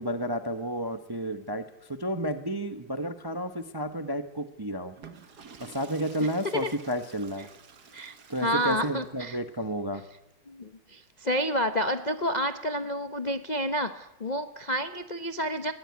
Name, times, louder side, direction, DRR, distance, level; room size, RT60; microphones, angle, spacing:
voice 1, 0.0-4.9 5.6-7.5 8.3-10.0, equal, 20° right, 9 dB, 0.6 m, -31 dB
Water / Toilet flush, 4.9-9.4, right 6 dB, 55° right, 2.0 m, -51 dB
voice 2, 6.2-6.7 7.9-9.4 10.5-15.7, equal, 40° left, 8 dB, 0.6 m, -30 dB
21.0 x 15.5 x 9.5 m, 0.87 s
omnidirectional pair, 2.1 m